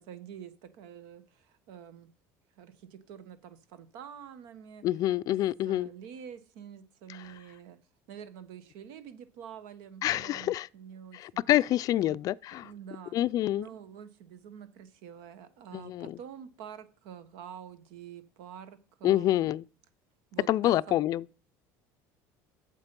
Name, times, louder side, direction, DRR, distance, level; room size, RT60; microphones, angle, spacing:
voice 1, 0.0-2.1 2.6-4.9 5.3-5.4 5.6-7.8 8.1-11.5 12.0-12.2 12.6-13.2 13.5-19.5 20.3-21.1, right 8 dB, 75° right, 1.2 m, -47 dB
voice 2, 4.8-5.9 10.0-10.7 11.1-12.7 13.1-13.7 15.7-16.2 19.0-19.6 20.5-21.2, left 14 dB, 50° left, 0.3 m, -27 dB
8.0 x 7.4 x 5.3 m
supercardioid pair, 105°, 8 cm